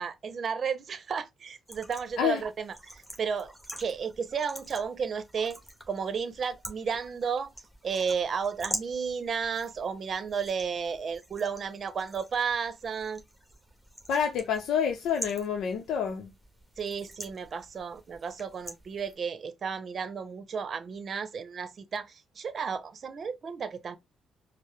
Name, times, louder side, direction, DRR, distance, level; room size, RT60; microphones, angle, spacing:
voice 1, 0.0-3.5 3.8-5.6 5.9-7.5 7.8-13.2 16.8-24.0, right 6 dB, 50° right, 0.7 m, -33 dB
sound 1, 1.7-19.1, right 1 dB, ahead, 1.4 m, -45 dB
voice 2, 14.1-16.3, left 7 dB, 80° left, 0.6 m, -28 dB
4.6 x 2.0 x 3.2 m
cardioid pair, 90°, 0 cm